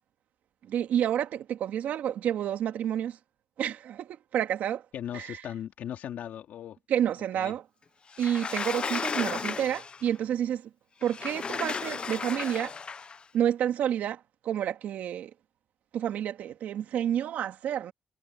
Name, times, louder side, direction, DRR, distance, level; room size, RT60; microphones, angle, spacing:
voice 1, 0.7-3.2 3.6-4.8 5.1-5.4 6.9-7.6 8.2-10.7 11.0-12.7 13.3-15.3 15.9-17.9, right 10 dB, 85° right, 2.6 m, -29 dB
voice 2, 4.9-6.8 7.3-7.6, left 10 dB, 85° left, 2.9 m, -38 dB
Sliding door, 8.1-10.1 11.0-13.2, left 5 dB, 40° left, 0.9 m, -34 dB
cardioid pair, 105°, 3 cm